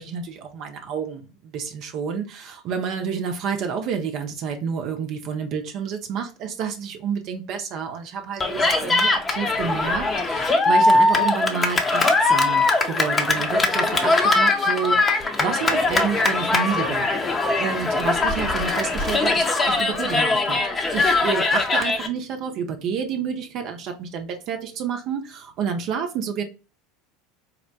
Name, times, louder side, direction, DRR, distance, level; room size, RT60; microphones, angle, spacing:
voice 1, 0.0-17.2 17.6-20.6 20.9-26.4, right 6 dB, 50° right, 5 dB, 0.6 m, -29 dB
Cheering, 8.4-22.1, left 2 dB, 25° left, 0.7 m, -21 dB
4.2 x 2.1 x 2.7 m, 0.33 s
hypercardioid pair, 75°, 0 cm